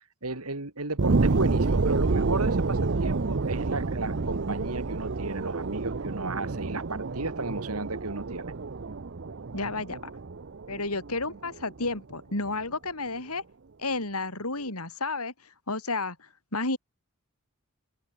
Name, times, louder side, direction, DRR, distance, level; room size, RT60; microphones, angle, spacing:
voice 1, 0.2-8.4, right 2 dB, 80° right, 4.0 m, -34 dB
sound 1, 1.0-12.0 12.5-12.6, right 3 dB, 55° right, 0.8 m, -29 dB
voice 2, 9.5-10.1 10.7-13.4 13.8-15.3 15.7-16.2 16.5-16.8, left 3 dB, 80° left, 6.9 m, -31 dB
open air
head